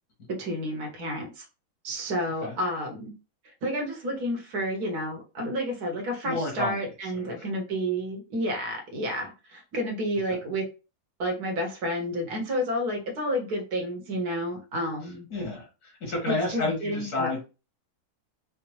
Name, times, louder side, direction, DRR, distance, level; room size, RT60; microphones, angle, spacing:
voice 1, 0.3-1.4 1.8-3.1 3.6-10.6 11.2-15.3 16.3-17.4, equal, 80° right, 2 dB, 1.7 m, -30 dB
voice 2, 6.2-6.8 7.1-7.3 10.3-10.4 15.3-17.4, left 2 dB, 70° left, -1 dB, 2.1 m, -30 dB
5.1 x 2.0 x 3.0 m, 0.31 s
omnidirectional pair, 1.7 m